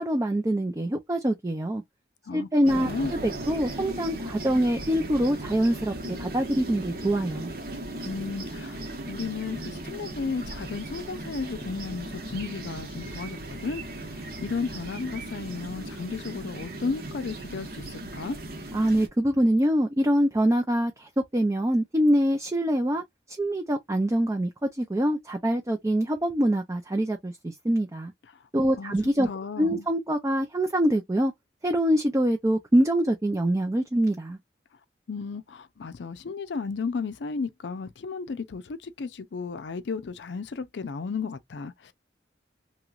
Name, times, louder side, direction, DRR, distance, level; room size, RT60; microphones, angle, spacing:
voice 1, 0.0-1.8 2.3-3.2 3.5-7.5 18.7-23.0 23.4-24.5 24.8-28.1 28.5-29.3 29.6-31.3 31.6-34.4, right 1 dB, 15° right, 0.4 m, -24 dB
voice 2, 2.3-3.1 8.0-18.4 28.7-29.0 29.2-29.9 35.1-41.9, left 4 dB, 80° left, 0.5 m, -34 dB
sound 1, 2.6-19.1, right 1 dB, 55° right, 1.0 m, -37 dB
3.0 x 2.9 x 2.4 m
head